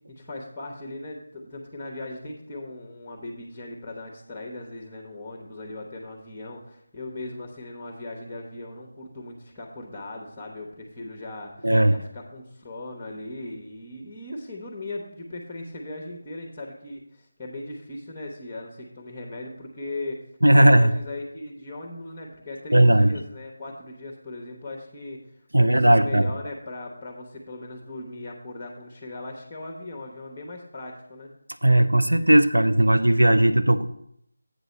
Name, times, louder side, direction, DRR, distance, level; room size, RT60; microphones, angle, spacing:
voice 1, 0.1-20.2 20.5-25.3 25.5-31.3, left 2 dB, 10° left, 2 dB, 0.9 m, -38 dB
voice 2, 11.6-11.9 20.4-20.9 22.7-23.1 25.5-26.3 31.6-33.9, right 1 dB, 85° right, 9 dB, 0.7 m, -17 dB
8.0 x 4.0 x 6.7 m, 0.73 s
figure-of-eight pair, 160°, 0 cm